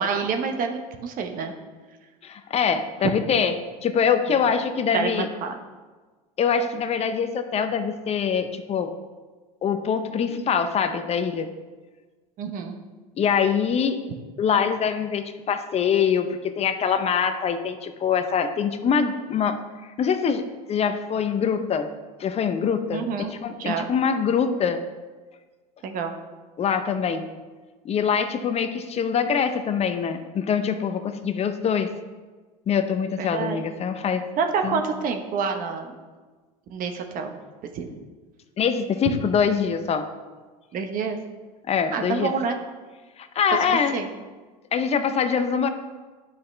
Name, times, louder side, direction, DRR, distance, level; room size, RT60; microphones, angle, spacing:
voice 1, 0.0-1.5 4.9-5.5 12.4-12.8 22.9-23.9 25.8-26.1 33.2-33.6 34.4-35.9 36.7-37.3 37.7-37.9 40.7-41.2 41.9-42.6 43.9-44.1, right 5 dB, 45° right, 5 dB, 1.1 m, -27 dB
voice 2, 2.2-3.5 3.8-5.3 6.4-8.9 9.6-11.5 13.2-14.0 14.4-19.6 20.0-20.4 20.7-21.9 22.2-24.8 26.6-27.3 27.8-31.9 32.7-34.2 34.6-34.8 38.6-40.1 41.7-42.3 43.2-44.0 44.7-45.7, left 6 dB, 35° left, 9 dB, 0.7 m, -24 dB
10.5 x 5.6 x 3.3 m, 1.3 s
hypercardioid pair, 95°, 19 cm